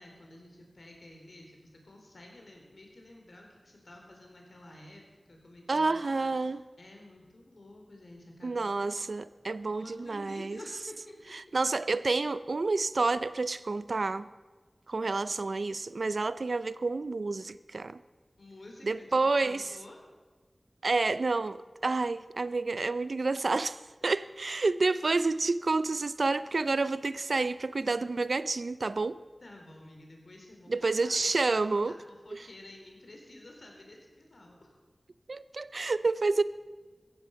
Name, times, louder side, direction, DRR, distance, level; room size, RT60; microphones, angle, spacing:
voice 1, 0.0-9.0 9.7-11.1 18.4-20.0 24.0-24.2 29.4-31.6 31.9-34.7, left 1 dB, 75° left, 4.0 m, -51 dB
voice 2, 5.7-6.6 8.4-10.6 11.5-14.3 14.9-18.0 18.8-19.6 20.8-21.6 21.8-23.8 24.0-29.2 30.7-31.9 35.3-36.4, right 3 dB, 85° right, 0.5 m, -29 dB
16.0 x 15.0 x 5.8 m
wide cardioid pair, 65°, 0 cm